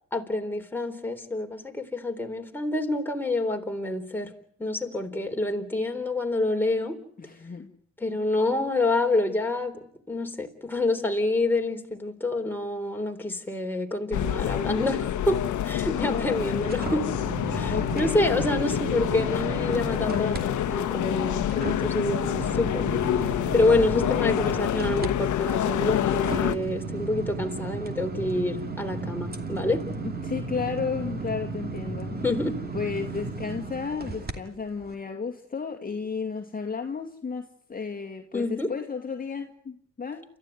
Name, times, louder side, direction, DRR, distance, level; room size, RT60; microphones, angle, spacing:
voice 1, 0.1-4.3 4.6-7.0 8.0-9.8 10.1-17.0 17.5-23.0 23.5-29.8 32.2-32.6 38.3-38.7, left 2 dB, 5° left, 3.7 m, -27 dB
voice 2, 7.2-7.7 15.9-16.5 17.7-18.3 30.0-32.1 32.7-40.2, left 5 dB, 30° left, 2.2 m, -33 dB
sound 1, 14.1-26.6, left 11 dB, 75° left, 1.3 m, -27 dB
sound 2, 15.8-20.4 20.8-34.3 34.8-34.9, right 3 dB, 30° right, 2.6 m, -35 dB
28.5 x 14.0 x 9.4 m
cardioid pair, 90°, 30 cm